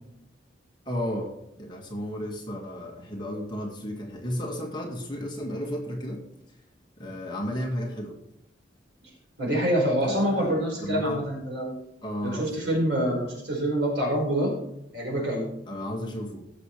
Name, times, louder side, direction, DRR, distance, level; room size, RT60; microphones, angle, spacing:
voice 1, 0.8-1.3 1.6-6.2 7.0-8.2 10.0-10.5 10.8-11.3 12.0-12.5 15.7-16.5, equal, 25° left, 0 dB, 1.8 m, -33 dB
voice 2, 9.4-11.7 12.2-14.5 14.9-15.5, equal, 70° right, -2 dB, 4.7 m, -26 dB
17.5 x 7.1 x 3.3 m, 0.80 s
head